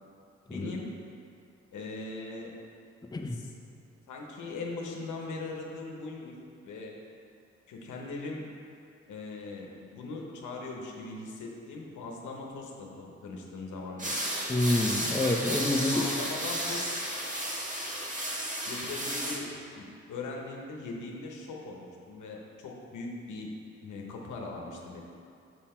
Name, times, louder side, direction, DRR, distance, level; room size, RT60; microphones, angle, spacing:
voice 1, 0.5-0.9 1.7-2.5 3.3-3.5 4.1-6.3 6.6-6.9 7.7-8.4 9.1-14.3 15.9-16.8 18.6-19.5 19.7-23.5 23.8-25.0, left 3 dB, 85° left, 0 dB, 1.0 m, -40 dB
sound 1, 14.0-19.4, right 1 dB, 25° right, 1.3 m, -33 dB
voice 2, 14.5-16.0, left 2 dB, 15° left, 3 dB, 0.6 m, -27 dB
5.9 x 5.7 x 4.3 m, 2.4 s
cardioid pair, 60°, 29 cm